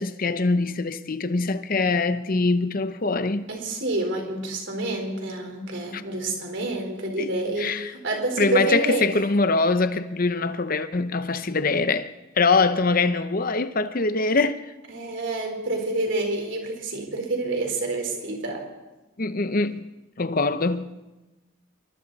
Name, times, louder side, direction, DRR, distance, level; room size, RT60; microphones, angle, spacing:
voice 1, 0.0-3.4 5.9-6.0 7.2-7.3 7.6-7.9 8.4-14.6 19.2-19.9 20.2-21.0, left 3 dB, 40° left, 0.8 m, -23 dB
voice 2, 3.5-9.1 14.9-18.7, right 2 dB, 55° right, 4.2 m, -28 dB
27.0 x 24.0 x 4.2 m
head